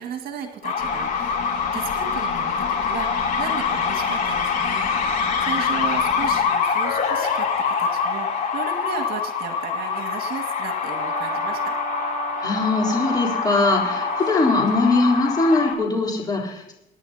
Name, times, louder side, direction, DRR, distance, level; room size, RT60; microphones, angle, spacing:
voice 1, 0.0-1.5 1.7-2.5 2.8-11.7, right 6 dB, 65° right, 3 dB, 2.1 m, -35 dB
sound 1, 0.6-15.7, left 6 dB, 55° left, 3.4 m, -25 dB
sound 2, 0.8-6.4, left 7 dB, 75° left, 2.8 m, -35 dB
Brass instrument, 10.8-14.7, right 10 dB, 25° right, 1.4 m, -34 dB
voice 2, 12.4-16.7, left 3 dB, 25° left, -2 dB, 3.8 m, -21 dB
25.0 x 11.0 x 2.9 m, 0.85 s
cardioid pair, 110°, 17 cm